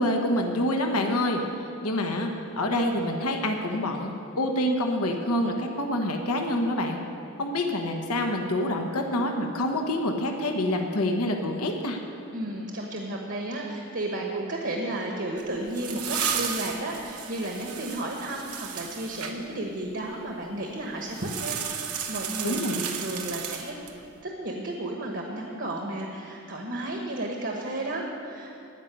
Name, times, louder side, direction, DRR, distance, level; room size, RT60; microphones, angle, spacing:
voice 1, 0.0-1.4 1.8-2.3 2.6-7.0 7.4-12.0 22.4-22.9, left 1 dB, 85° left, 3 dB, 1.2 m, -27 dB
voice 2, 12.3-23.8 24.2-28.6, right 1 dB, 50° right, 1 dB, 1.2 m, -33 dB
sound 1, 15.4-19.3 21.1-24.0, right 7 dB, 85° right, 1.1 m, -33 dB
15.5 x 5.4 x 9.9 m, 2.7 s
head